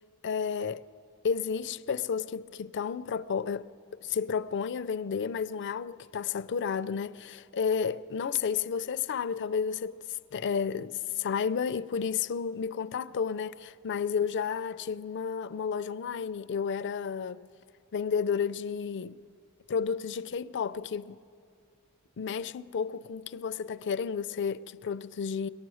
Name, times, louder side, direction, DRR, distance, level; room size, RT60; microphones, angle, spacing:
voice 1, 0.2-0.8 1.2-3.7 4.0-17.4 17.9-19.2 19.7-21.2 22.2-25.5, left 6 dB, 55° left, 0.4 m, -32 dB
23.5 x 18.5 x 6.3 m
head